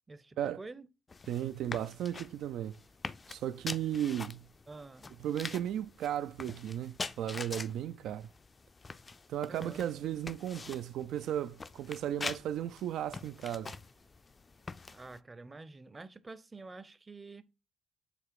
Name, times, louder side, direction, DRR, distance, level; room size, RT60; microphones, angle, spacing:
voice 1, 0.1-0.9 4.7-5.1 9.5-9.9 14.9-17.4, right 3 dB, 25° right, 0.6 m, -48 dB
sound 1, 1.1-15.2, left 4 dB, 30° left, 0.4 m, -45 dB
voice 2, 1.3-2.8 3.3-4.5 5.2-8.3 9.3-13.7, right 11 dB, 80° right, 0.3 m, -35 dB
6.9 x 3.2 x 4.6 m
cardioid pair, 90°, 0 cm